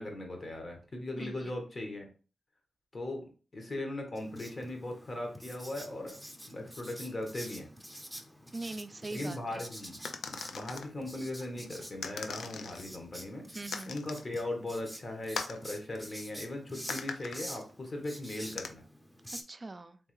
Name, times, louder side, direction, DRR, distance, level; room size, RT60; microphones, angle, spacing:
voice 1, 0.0-2.1 2.9-6.2 6.5-7.7 9.1-13.5 13.9-18.8, left 1 dB, 45° left, 3 dB, 1.5 m, -39 dB
voice 2, 1.2-1.5 8.5-9.6 13.5-13.9 19.3-20.0, right 2 dB, 40° right, 10 dB, 0.5 m, -42 dB
Writing, 4.2-19.4, equal, 5° left, 0.8 m, -48 dB
sound 1, 10.0-10.9 12.0-12.8 13.7-14.3 15.3-15.6 16.9-17.4 18.6-18.7, left 5 dB, 85° left, 0.4 m, -39 dB
3.6 x 3.3 x 3.2 m, 0.37 s
cardioid pair, 50°, 0 cm